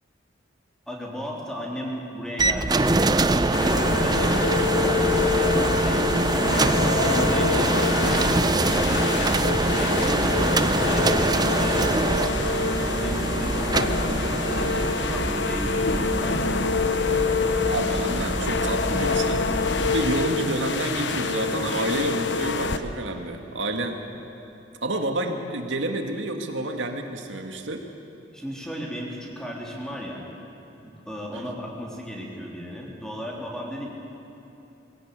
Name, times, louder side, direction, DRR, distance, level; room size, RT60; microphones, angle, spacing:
voice 1, 0.9-3.0 3.3-5.0 5.4-9.4 9.6-14.6 14.9-16.7 28.3-30.2 30.8-33.9, equal, 5° left, -2 dB, 3.3 m, -35 dB
sound 1, 2.4-20.3, right 2 dB, 20° right, 0.6 m, -24 dB
sound 2, 3.5-22.8, left 4 dB, 70° left, 1.0 m, -26 dB
voice 2, 17.6-19.4 19.9-24.0 24.8-27.8 31.3-31.5, right 2 dB, 85° right, 4 dB, 2.0 m, -29 dB
22.0 x 16.5 x 8.2 m, 3.0 s
head